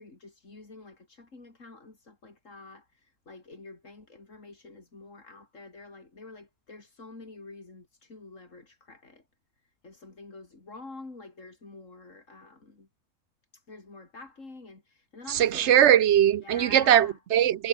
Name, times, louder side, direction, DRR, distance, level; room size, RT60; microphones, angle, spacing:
voice 1, 0.0-9.3 9.6-12.9 13.5-15.8 16.4-17.2, left 3 dB, 85° left, 4.1 m, -48 dB
voice 2, 15.3-17.7, right 10 dB, 70° right, 0.9 m, -20 dB
omnidirectional pair, 1.3 m